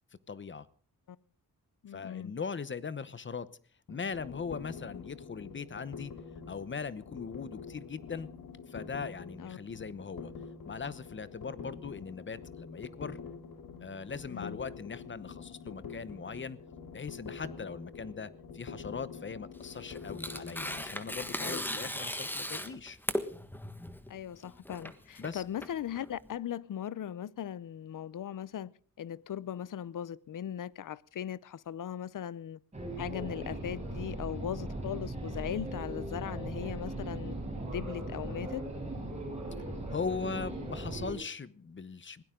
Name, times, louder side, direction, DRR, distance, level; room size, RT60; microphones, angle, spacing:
voice 1, 0.3-0.7 1.9-3.5 3.9-6.1 6.5-8.3 8.7-10.3 10.6-13.2 13.8-16.6 16.9-23.0 25.2-25.4 39.9-42.2, left 5 dB, 35° left, 0.9 m, -40 dB
voice 2, 1.8-2.3 9.4-9.6 14.3-14.6 21.4-21.6 24.1-32.6 33.0-37.4 37.6-38.6, left 9 dB, 65° left, 0.7 m, -39 dB
sound 1, 3.9-21.3, left 5 dB, 85° left, 2.5 m, -46 dB
Tearing, 19.5-26.3, left 1 dB, 5° left, 1.4 m, -38 dB
sound 2, 32.7-41.1, right 1 dB, 20° right, 6.9 m, -38 dB
21.0 x 17.0 x 3.8 m
wide cardioid pair, 145°, 34 cm